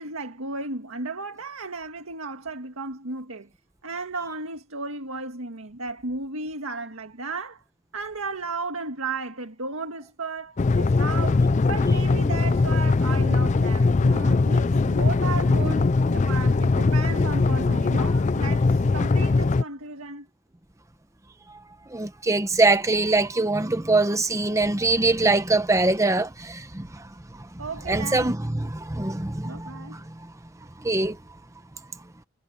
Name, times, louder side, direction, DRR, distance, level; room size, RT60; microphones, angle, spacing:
voice 1, 0.0-3.5 3.8-7.6 7.9-15.8 16.1-20.3 27.6-28.4 29.4-30.0, right 3 dB, 80° right, 1.8 m, -34 dB
sound 1, 10.6-19.6, left 3 dB, 35° left, 0.4 m, -21 dB
voice 2, 21.9-27.0 27.9-30.0 30.8-31.2, right 2 dB, 15° right, 0.9 m, -23 dB
head